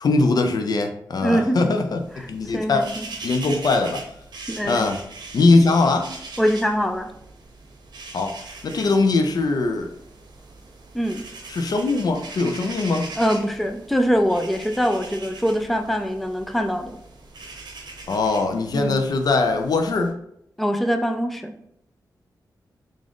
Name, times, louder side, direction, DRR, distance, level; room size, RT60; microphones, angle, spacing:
voice 1, 0.0-2.0 2.3-2.8 3.2-4.0 4.6-5.0 5.3-6.1 8.1-8.3 8.6-9.9 11.5-13.1 18.1-20.1, left 3 dB, 60° left, 5 dB, 0.5 m, -21 dB
voice 2, 1.2-1.8 2.2-3.0 4.5-4.9 6.4-7.1 10.9-11.3 13.2-17.0 18.7-19.0 20.6-21.5, equal, ahead, 6 dB, 0.4 m, -23 dB
sound 1, 1.8-20.1, right 3 dB, 75° right, 0.7 m, -41 dB
3.7 x 2.5 x 3.5 m, 0.74 s
cardioid pair, 75°, 7 cm